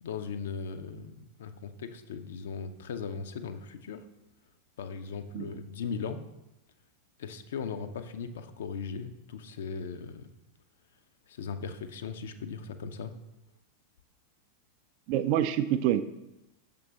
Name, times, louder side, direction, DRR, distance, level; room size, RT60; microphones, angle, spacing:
voice 1, 0.0-4.0 4.8-6.2 7.2-10.3 11.3-13.1, left 5 dB, 60° left, 9 dB, 0.5 m, -38 dB
voice 2, 15.1-16.0, right 11 dB, 45° right, 11 dB, 0.3 m, -27 dB
6.5 x 5.2 x 3.4 m, 0.93 s
figure-of-eight pair, 90°, 0 cm